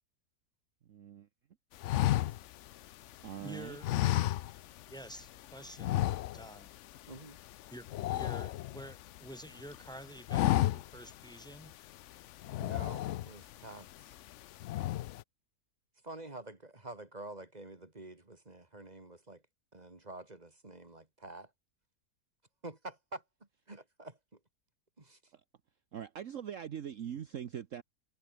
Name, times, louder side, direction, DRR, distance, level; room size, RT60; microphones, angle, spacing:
voice 1, 0.8-1.3 3.2-3.8 25.3-25.4 25.9-27.8, right 9 dB, 55° right, 1.2 m, -42 dB
sound 1, 1.8-3.3 3.8-4.9 5.2-5.4 5.8-6.7 6.9-7.2 7.5-9.2 9.6-9.9 10.2-11.1 11.5-11.6 12.4-13.5 14.0-14.3 14.6-15.2, left 14 dB, 70° left, 0.7 m, -32 dB
voice 2, 3.4-3.9 4.9-6.0 6.3-6.7 7.7-11.7, right 1 dB, ahead, 2.8 m, -49 dB
voice 3, 7.1-7.4 12.6-14.2 16.0-19.4 19.7-21.5 22.6-23.2 23.7-24.4 25.0-25.2, right 2 dB, 25° right, 2.5 m, -48 dB
omnidirectional pair, 1.7 m